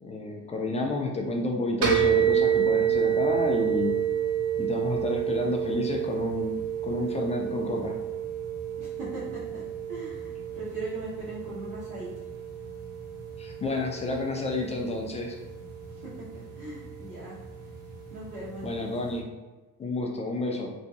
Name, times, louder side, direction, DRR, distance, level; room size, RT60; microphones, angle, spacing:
voice 1, 0.0-4.0 4.6-8.0 13.4-15.4 18.6-19.3 19.8-20.7, left 2 dB, 15° left, 1 dB, 0.3 m, -30 dB
sound 1, 1.8-19.2, right 9 dB, 45° right, 0.8 m, -30 dB
voice 2, 8.8-12.1 15.9-17.4 18.1-18.9, right 2 dB, 65° right, -12 dB, 1.2 m, -39 dB
3.0 x 2.5 x 2.3 m, 1.2 s
figure-of-eight pair, 45°, 50 cm